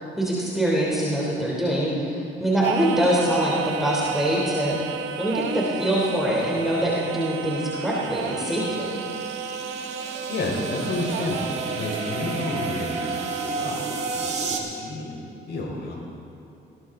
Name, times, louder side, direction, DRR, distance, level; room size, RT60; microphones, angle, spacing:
voice 1, 0.2-4.8 5.2-9.0, right 1 dB, ahead, -5 dB, 3.2 m, -24 dB
Singing, 2.6-14.7, right 7 dB, 85° right, 0.8 m, -33 dB
sound 1, 6.6-14.6, right 3 dB, 35° right, 2.4 m, -33 dB
voice 2, 10.3-13.8 14.1-15.2 15.5-16.0, left 2 dB, 60° left, -1 dB, 4.4 m, -30 dB
19.5 x 17.0 x 3.8 m, 2.8 s
cardioid pair, 90°, 20 cm